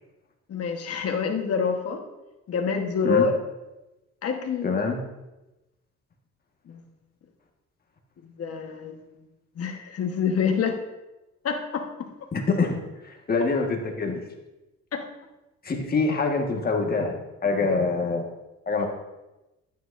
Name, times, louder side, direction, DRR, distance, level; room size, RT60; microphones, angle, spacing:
voice 1, 0.5-2.0 2.5-3.3 4.2-4.7 6.7-6.8 8.2-9.0 9.5-10.8 11.4-11.9 14.9-15.0, left 6 dB, 55° left, 4 dB, 1.3 m, -26 dB
voice 2, 4.6-5.0 12.3-12.8 13.0-14.2 15.6-18.2 18.7-18.9, left 4 dB, 30° left, 2 dB, 1.6 m, -25 dB
12.5 x 9.2 x 2.6 m, 1.0 s
cardioid pair, 120°, 29 cm